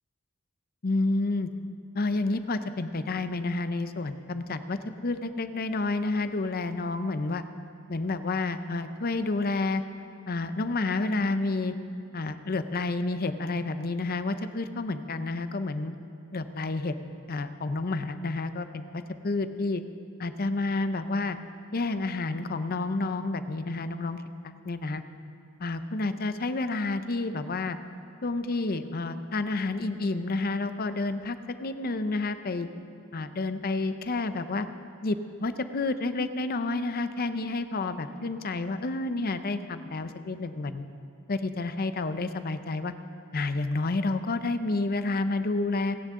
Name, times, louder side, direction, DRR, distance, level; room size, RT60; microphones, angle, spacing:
voice 1, 0.8-1.5 1.9-7.4 7.9-9.8 10.3-11.7 12.1-15.9 16.3-16.9 17.3-19.8 20.2-21.4 21.7-25.0 25.6-27.8 28.2-32.7 33.1-34.7 35.0-40.9 41.3-42.9 43.3-46.0, left 3 dB, 45° left, 11 dB, 0.6 m, -30 dB
30.0 x 10.5 x 3.7 m, 2.4 s
head